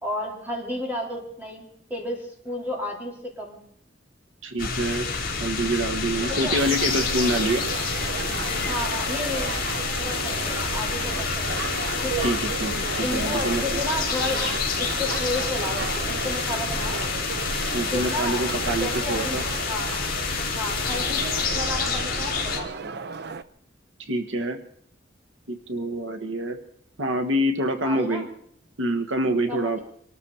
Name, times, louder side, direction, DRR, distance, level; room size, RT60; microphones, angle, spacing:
voice 1, 0.0-3.6 6.3-6.6 8.7-9.5 10.0-11.7 12.0-12.3 13.0-14.4 14.8-17.0 17.9-18.5 18.8-19.9 20.5-22.8 27.8-28.3 29.5-29.8, left 1 dB, 10° right, -1 dB, 4.2 m, -32 dB
voice 2, 4.4-5.1 5.4-7.6 12.2-13.6 17.6-19.4 24.0-24.6 25.5-26.6 27.0-28.2 28.8-29.8, right 1 dB, 80° right, 8 dB, 1.3 m, -26 dB
sound 1, 4.6-22.6, left 4 dB, 50° left, 3.4 m, -28 dB
sound 2, 6.2-23.4, right 4 dB, 60° right, 0.7 m, -34 dB
sound 3, 6.6-21.5, left 6 dB, 30° left, 1.4 m, -35 dB
24.0 x 13.0 x 4.3 m, 0.64 s
head